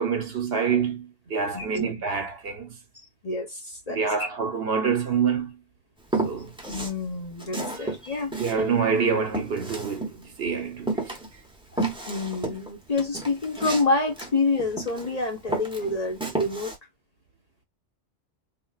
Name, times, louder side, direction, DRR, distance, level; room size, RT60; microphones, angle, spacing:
voice 1, 0.0-2.8 3.9-5.6 6.2-6.6 7.8-7.9 8.4-11.1, right 6 dB, 60° right, 0.9 m, -27 dB
voice 2, 1.5-1.9 3.2-4.3 6.7-8.3 11.7-16.7, left 3 dB, 35° left, 0.9 m, -28 dB
Walk footsteps, 6.1-7.0 7.4-10.5 10.9-15.1 15.5-16.8, right 2 dB, 5° right, 0.6 m, -31 dB
3.7 x 2.5 x 2.3 m
omnidirectional pair, 1.3 m